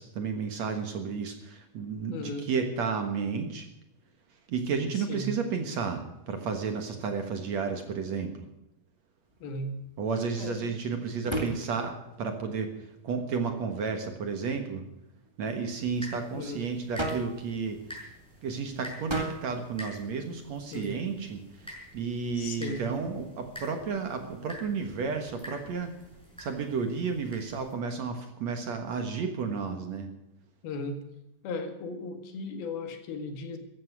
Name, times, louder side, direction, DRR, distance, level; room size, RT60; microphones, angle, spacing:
voice 1, 0.0-3.7 4.5-8.5 10.0-12.7 13.0-14.8 15.4-17.8 18.4-21.4 21.9-25.9 26.4-30.1, right 5 dB, 60° right, 5 dB, 2.2 m, -32 dB
voice 2, 2.1-2.5 4.9-5.3 9.4-9.7 10.4-11.5 16.3-16.6 20.7-20.9 22.3-22.9 30.6-31.0 31.4-33.6, left 2 dB, 80° left, 6 dB, 3.7 m, -37 dB
sound 1, 9.2-26.1, right 1 dB, 15° right, 1.1 m, -43 dB
sound 2, 15.8-27.7, equal, ahead, 6.3 m, -48 dB
15.0 x 13.5 x 6.2 m, 0.89 s
omnidirectional pair, 4.3 m